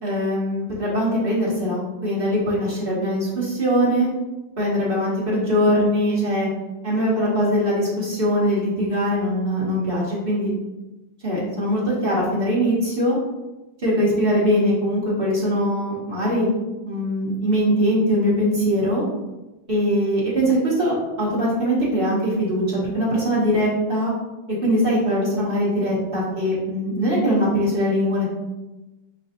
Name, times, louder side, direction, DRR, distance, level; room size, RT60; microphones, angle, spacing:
voice 1, 0.0-4.1 4.6-6.5 6.8-10.5 11.2-13.2 13.8-16.5 16.8-19.0 19.7-24.1 24.6-28.2, equal, 35° right, -7 dB, 1.1 m, -21 dB
6.3 x 2.4 x 2.5 m, 1.1 s
omnidirectional pair, 2.3 m